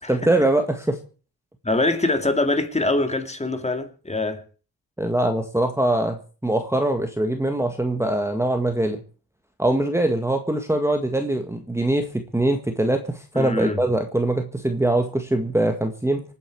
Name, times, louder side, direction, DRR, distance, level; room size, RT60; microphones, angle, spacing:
voice 1, 0.1-1.0 5.0-9.0 9.6-16.2, right 1 dB, 5° right, 1.7 m, -22 dB
voice 2, 1.6-4.4 13.3-13.8, left 2 dB, 15° left, 2.4 m, -23 dB
27.0 x 9.3 x 4.7 m
cardioid pair, 110°, 37 cm